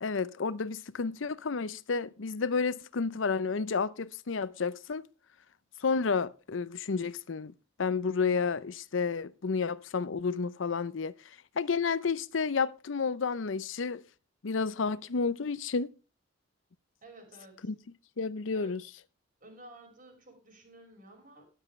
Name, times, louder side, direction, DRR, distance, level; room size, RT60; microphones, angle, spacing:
voice 1, 0.0-5.1 5.8-7.5 7.8-11.1 11.6-14.0 14.4-15.9 17.7-17.8 18.2-18.8, left 5 dB, 85° left, 0.6 m, -31 dB
voice 2, 17.0-17.7 18.5-18.7 19.4-21.5, right 1 dB, 45° right, 5.2 m, -53 dB
13.0 x 11.0 x 3.2 m
head